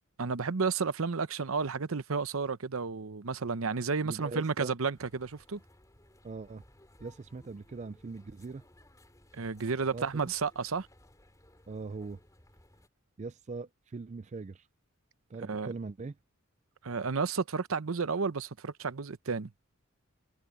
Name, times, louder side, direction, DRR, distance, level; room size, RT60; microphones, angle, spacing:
voice 1, 0.2-5.6 9.3-10.9 15.5-15.7 16.8-19.5, right 5 dB, 75° right, 0.8 m, -32 dB
voice 2, 4.0-4.7 6.2-6.6 7.0-8.6 9.9-10.3 11.7-12.2 13.2-14.7 15.3-16.2, right 4 dB, 35° right, 0.4 m, -41 dB
sound 1, 4.9-12.9, left 1 dB, 15° left, 3.0 m, -60 dB
head